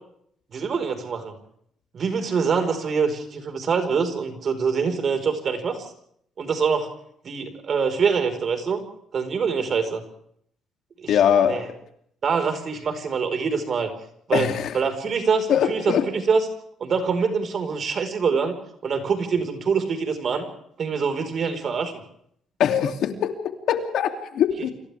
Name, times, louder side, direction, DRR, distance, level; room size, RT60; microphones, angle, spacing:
voice 1, 0.5-1.3 1.9-5.8 6.4-6.9 7.2-8.8 9.1-10.0 11.0-11.2 11.5-11.6 12.2-13.9 14.3-14.5 14.7-16.5 16.8-18.5 18.8-20.5 20.8-21.9, right 5 dB, 45° right, 6 dB, 5.0 m, -24 dB
voice 2, 11.1-11.8 14.3-14.7 15.5-16.1 22.6-24.7, left 9 dB, 70° left, 5 dB, 2.9 m, -22 dB
29.5 x 26.5 x 3.6 m, 0.68 s
cardioid pair, 110°, 0 cm